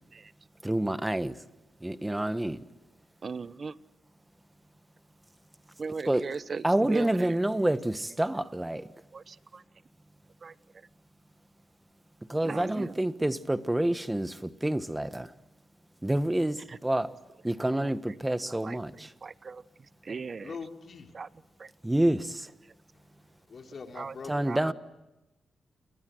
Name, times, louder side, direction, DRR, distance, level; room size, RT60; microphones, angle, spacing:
voice 1, 0.6-1.3 1.8-2.6 6.1-6.2 6.6-8.9 12.3-15.3 16.0-17.1 17.4-18.9 21.8-22.5 24.3-24.7, right 1 dB, 10° right, 1.4 m, -28 dB
voice 2, 3.2-3.8 5.8-7.4 9.1-9.6 10.4-10.9 12.4-13.0 16.7-16.8 17.1-17.2 17.6-17.9 18.5-19.6 20.0-20.6 21.1-21.3 21.6-21.7 23.9-24.2 24.4-24.6, right 4 dB, 45° right, 1.0 m, -39 dB
voice 3, 20.4-21.1 23.5-24.7, left 5 dB, 55° left, 3.8 m, -43 dB
29.5 x 23.5 x 7.8 m
cardioid pair, 80°, 0 cm